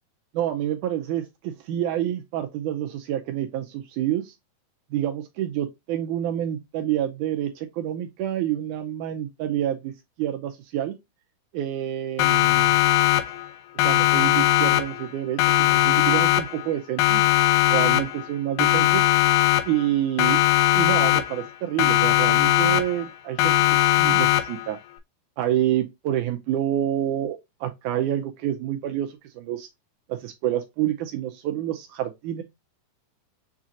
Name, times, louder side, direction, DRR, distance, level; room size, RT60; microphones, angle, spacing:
voice 1, 0.3-4.3 4.9-9.9 10.2-11.0 11.5-12.8 13.8-17.2 17.7-19.0 19.7-20.4 20.7-24.8 25.4-29.7 30.1-32.4, right 11 dB, 85° right, 1.8 m, -28 dB
Siren, 12.2-13.5 13.8-15.1 15.4-16.7 17.0-18.3 18.6-19.9 20.2-21.5 21.8-23.1 23.4-24.7, left 15 dB, 80° left, 2.0 m, -20 dB
7.2 x 2.5 x 2.8 m
omnidirectional pair, 4.1 m